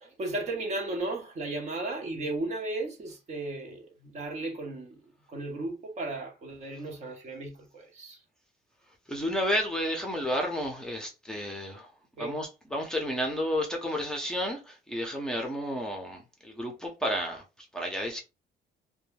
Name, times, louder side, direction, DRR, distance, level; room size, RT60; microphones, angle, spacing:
voice 1, 0.0-8.2 12.2-12.4, right 2 dB, 45° right, 0.9 m, -35 dB
voice 2, 9.1-11.9 12.2-18.2, equal, 5° left, 0.7 m, -31 dB
2.2 x 2.2 x 3.2 m
cardioid pair, 110°, 17 cm